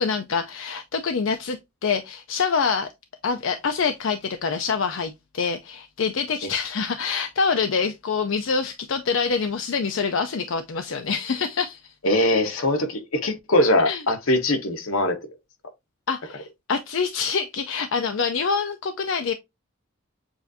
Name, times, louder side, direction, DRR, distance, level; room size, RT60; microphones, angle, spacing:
voice 1, 0.0-2.9 3.2-11.9 13.8-14.0 16.1-19.3, left 5 dB, 65° left, 0.5 m, -26 dB
voice 2, 12.0-15.2, left 1 dB, 80° left, 1.1 m, -21 dB
7.0 x 2.6 x 2.6 m
head